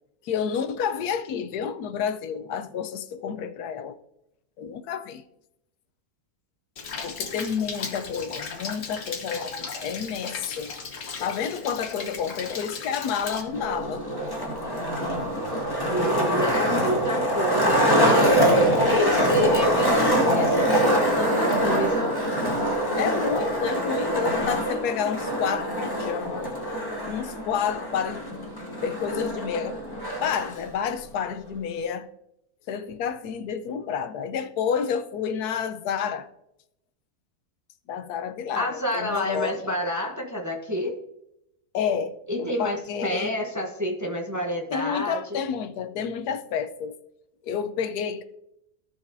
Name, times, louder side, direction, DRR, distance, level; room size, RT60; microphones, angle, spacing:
voice 1, 0.2-4.0 4.6-5.2 7.0-10.8 11.2-14.0 18.5-19.3 23.0-26.5 27.0-28.5 28.8-29.8 30.2-32.1 32.7-36.3 37.9-39.7 41.7-43.3 44.7-46.9 47.4-48.2, left 7 dB, 85° left, 1.2 m, -30 dB
Rain, 6.8-13.4, left 5 dB, 60° left, 1.4 m, -36 dB
Skateboard, 13.5-30.5, equal, 15° left, 1.7 m, -24 dB
voice 2, 15.9-22.2 38.5-40.9 42.3-45.4, equal, 15° right, 0.8 m, -29 dB
16.5 x 5.7 x 2.6 m
omnidirectional pair, 1.6 m